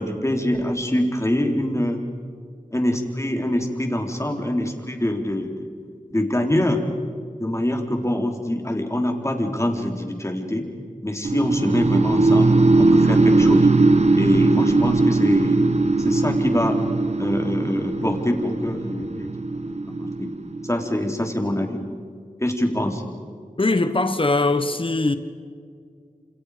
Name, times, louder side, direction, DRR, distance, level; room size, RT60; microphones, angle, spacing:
voice 1, 0.0-2.0 2.7-5.5 6.1-6.8 7.4-10.7 11.0-12.5 12.8-13.7 14.2-15.6 16.0-16.8 17.2-19.3 19.6-19.7 20.0-20.3 20.6-21.8 22.4-23.0, left 1 dB, 20° left, 4.1 m, -24 dB
sound 1, 11.2-21.2, right 3 dB, 50° right, 1.3 m, -19 dB
voice 2, 23.6-25.1, left 2 dB, 40° left, 1.4 m, -21 dB
28.0 x 28.0 x 5.2 m
cardioid pair, 45°, 14 cm